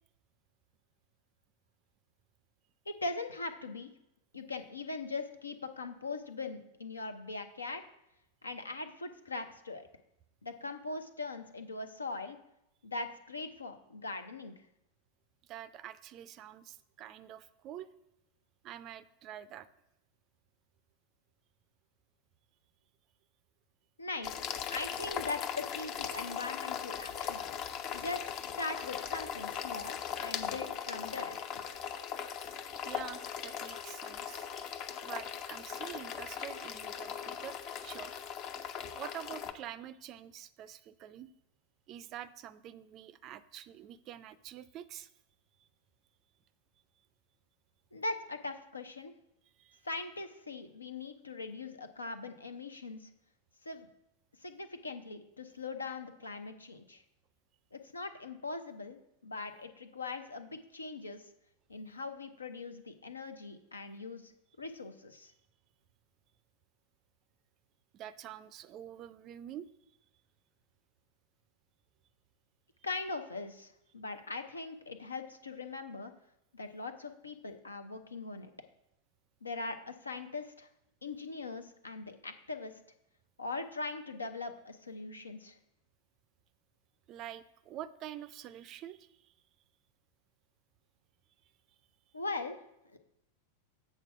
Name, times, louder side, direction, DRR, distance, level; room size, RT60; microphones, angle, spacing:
voice 1, 2.9-3.9 4.3-7.8 8.4-9.9 10.4-12.4 12.8-14.5 24.0-24.3 24.7-27.4 27.9-28.2 28.6-31.5 47.9-49.1 49.8-53.1 53.7-53.9 54.4-57.0 57.7-59.0 59.2-61.2 61.7-64.3 64.6-65.3 72.8-76.1 76.5-78.5 79.4-80.7 81.0-82.8 83.4-85.6 92.1-92.6 92.9-93.0, left 3 dB, 75° left, 8 dB, 0.7 m, -41 dB
voice 2, 15.4-17.9 18.6-19.7 32.8-38.1 38.9-41.3 41.9-45.1 49.6-49.8 67.9-69.7 87.1-89.3, right 11 dB, 35° right, 16 dB, 0.4 m, -47 dB
sound 1, 24.2-39.5, left 8 dB, 40° left, 0.6 m, -39 dB
8.1 x 4.4 x 5.9 m, 0.84 s
figure-of-eight pair, 90°, 0 cm